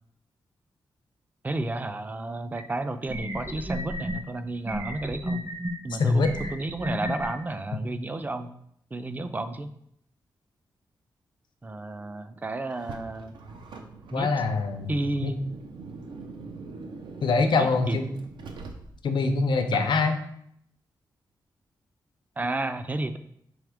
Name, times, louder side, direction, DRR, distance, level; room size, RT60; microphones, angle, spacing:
voice 1, 1.4-5.4 5.8-8.5 8.9-9.7 11.6-13.4 14.1-14.3 14.9-15.4 17.4-18.0 19.7-19.9 22.4-23.2, right 2 dB, 20° right, 10 dB, 0.3 m, -32 dB
sound 1, 2.6-2.7 3.1-4.2 4.7-5.7 6.2-7.3, equal, 40° right, 0.8 m, -32 dB
voice 2, 6.0-6.3 14.1-14.9 15.2-15.3 17.2-18.1 19.0-20.2, left 4 dB, 75° left, 7 dB, 0.5 m, -23 dB
Car, 12.7-19.2, right 3 dB, 85° right, 0.5 m, -43 dB
3.5 x 3.1 x 4.8 m, 0.71 s
cardioid pair, 90°, 8 cm